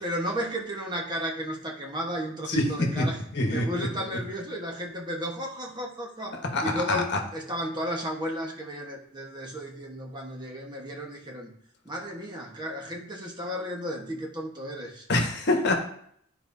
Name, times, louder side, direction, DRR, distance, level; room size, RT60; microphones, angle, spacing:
voice 1, 0.0-3.2 3.5-6.3 6.6-11.5 11.8-15.1, equal, 20° right, 0 dB, 1.1 m, -33 dB
voice 2, 2.5-3.1 3.3-3.9 6.5-7.2 15.1-15.7, left 2 dB, 55° left, 2 dB, 1.2 m, -25 dB
12.5 x 4.5 x 2.7 m, 0.65 s
head